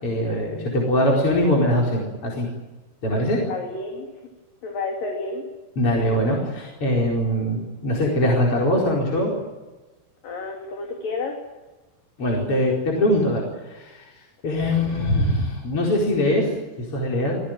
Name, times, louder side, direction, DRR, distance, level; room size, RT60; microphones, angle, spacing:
voice 1, 0.0-2.5 3.0-3.4 5.8-9.3 12.2-14.1 14.4-17.4, left 1 dB, 35° left, -2 dB, 5.3 m, -22 dB
voice 2, 3.4-4.1 4.6-5.4 10.2-11.4, left 3 dB, 60° left, 1 dB, 4.6 m, -30 dB
28.5 x 17.5 x 9.2 m, 1.2 s
omnidirectional pair, 4.7 m